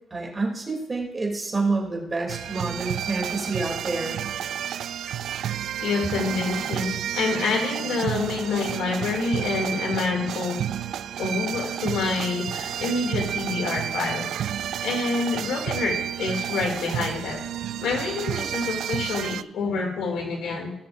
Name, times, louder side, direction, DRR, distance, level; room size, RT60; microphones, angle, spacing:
voice 1, 0.1-4.2, right 3 dB, 25° right, 0 dB, 2.9 m, -28 dB
sound 1, 2.3-19.4, right 10 dB, 70° right, 0.3 m, -31 dB
voice 2, 5.8-10.7 11.2-14.3 14.8-17.4 17.8-20.7, left 4 dB, 75° left, 1 dB, 2.6 m, -27 dB
18.0 x 6.8 x 2.6 m, 0.81 s
cardioid pair, 90°, 0 cm